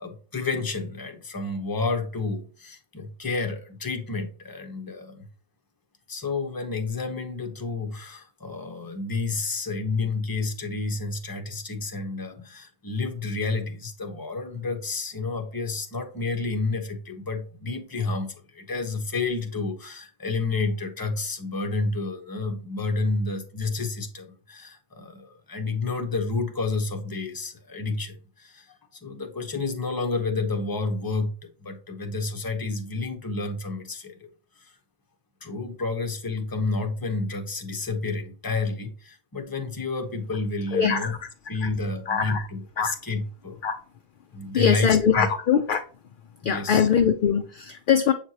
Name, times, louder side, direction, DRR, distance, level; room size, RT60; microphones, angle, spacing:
voice 1, 0.0-5.3 6.1-34.3 34.6-34.7 35.4-41.2 41.5-43.6 44.3-45.3 46.4-46.9, left 3 dB, 20° left, 0.8 m, -30 dB
voice 2, 40.7-41.1 41.6-41.7 42.1-42.5 42.8-42.9 43.6-43.8 44.5-45.8 46.4-48.1, left 7 dB, 60° left, 0.6 m, -22 dB
7.4 x 4.6 x 2.8 m
omnidirectional pair, 1.1 m